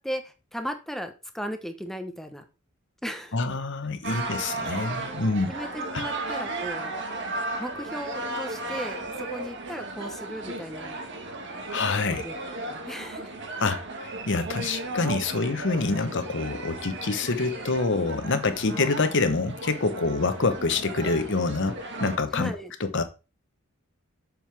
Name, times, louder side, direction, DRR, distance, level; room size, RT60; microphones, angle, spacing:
voice 1, 0.0-2.4 3.0-3.4 5.5-6.9 7.6-11.0 11.5-11.7 12.1-12.3 12.7-13.3 22.3-22.7, equal, ahead, 1.0 m, -36 dB
voice 2, 3.3-5.5 5.9-6.0 11.7-12.2 13.6-22.5 22.9-23.0, left 3 dB, 60° left, 1.0 m, -26 dB
sound 1, 4.0-22.2, right 2 dB, 60° right, 1.5 m, -35 dB
7.5 x 6.5 x 3.4 m
head